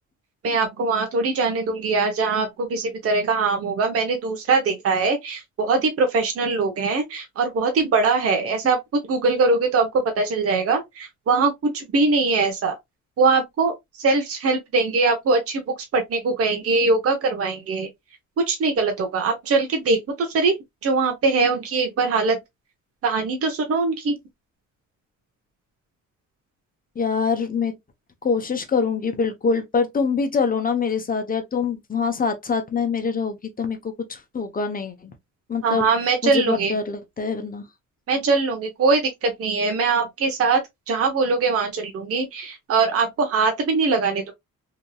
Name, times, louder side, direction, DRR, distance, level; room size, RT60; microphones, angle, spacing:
voice 1, 0.4-12.7 13.2-17.9 18.4-20.6 20.8-22.4 23.0-24.2 35.6-36.7 38.1-44.3, right 4 dB, 50° right, 0.9 m, -22 dB
voice 2, 27.0-27.7 28.2-35.1 35.5-35.9 36.2-37.7, left 5 dB, 30° left, 0.8 m, -24 dB
2.9 x 2.6 x 2.2 m
cardioid pair, 90°, 30 cm